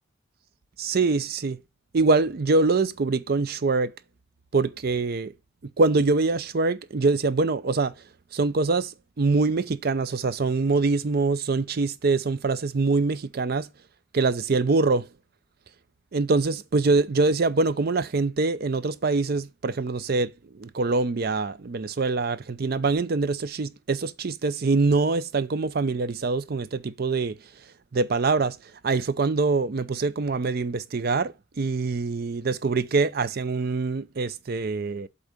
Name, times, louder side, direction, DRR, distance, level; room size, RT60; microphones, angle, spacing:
voice 1, 0.8-1.6 1.9-3.9 4.5-5.3 5.6-7.9 8.3-13.7 14.1-15.1 16.1-27.4 27.9-28.6 28.8-35.1, right 3 dB, 50° right, 0.5 m, -24 dB
8.0 x 3.8 x 5.1 m
head